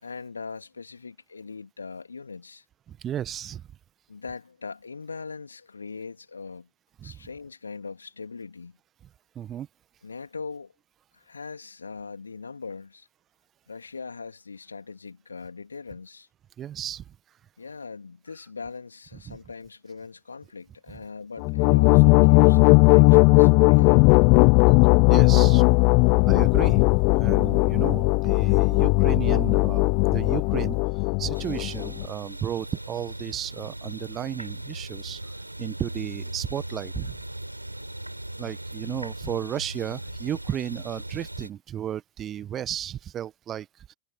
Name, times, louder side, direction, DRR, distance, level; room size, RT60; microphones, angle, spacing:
voice 1, 0.0-2.6 4.1-6.7 7.0-8.8 10.0-10.7 11.1-13.1 13.7-16.3 17.6-24.1, left 4 dB, 75° left, 2.7 m, -40 dB
voice 2, 2.9-3.7 7.0-7.2 9.3-9.7 16.6-17.0 19.3-19.4 25.1-25.7 26.3-30.8 31.2-35.2 35.6-37.2 38.4-43.9, right 10 dB, 30° right, 1.4 m, -33 dB
sound 1, 21.4-32.0, left 35 dB, 45° left, 0.4 m, -18 dB
sound 2, 31.3-41.5, right 1 dB, 85° right, 4.5 m, -38 dB
figure-of-eight pair, 90°, 0 cm